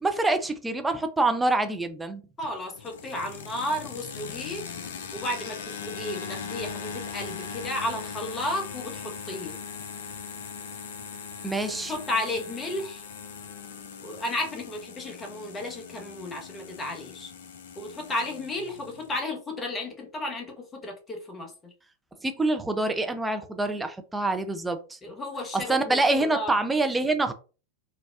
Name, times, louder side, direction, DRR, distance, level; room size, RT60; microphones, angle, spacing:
voice 1, 0.0-2.2 11.4-11.9 22.2-25.0 25.5-27.3, right 2 dB, 10° right, 7 dB, 0.4 m, -26 dB
sound 1, 2.4-19.2, left 6 dB, 60° left, 0.5 m, -40 dB
voice 2, 2.4-4.6 5.1-9.5 11.9-13.0 14.0-17.3 17.7-21.7 25.0-26.5, left 1 dB, 20° left, 3 dB, 1.0 m, -33 dB
3.8 x 2.2 x 2.4 m, 0.35 s
figure-of-eight pair, 90°, 0 cm